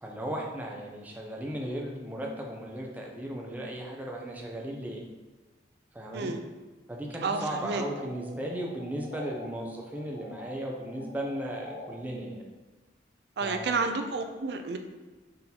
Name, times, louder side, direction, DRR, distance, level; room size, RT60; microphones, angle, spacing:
voice 1, 0.0-5.0 5.9-6.3 6.9-12.4 13.4-13.8, right 1 dB, 10° right, -1 dB, 0.5 m, -36 dB
voice 2, 7.2-7.8 13.4-14.8, right 4 dB, 65° right, 6 dB, 0.4 m, -30 dB
sound 1, 7.4-9.5 9.8-11.9, left 1 dB, 85° left, 0.9 m, -46 dB
4.0 x 3.8 x 2.8 m, 1.3 s
head